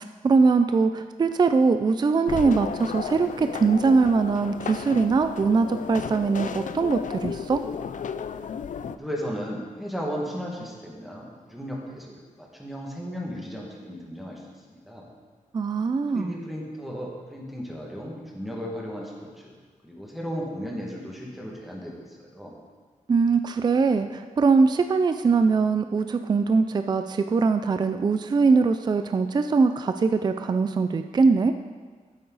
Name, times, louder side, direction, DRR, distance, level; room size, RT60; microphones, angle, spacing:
voice 1, 0.0-7.6 15.5-16.4 23.1-31.5, right 4 dB, 30° right, 8 dB, 0.4 m, -22 dB
sound 1, 2.3-9.0, left 7 dB, 65° left, 0.4 m, -34 dB
voice 2, 8.8-14.4 14.7-15.1 16.1-19.6 19.8-22.6, equal, ahead, -3 dB, 1.9 m, -35 dB
12.5 x 9.4 x 4.1 m, 1.5 s
wide cardioid pair, 175°, 14 cm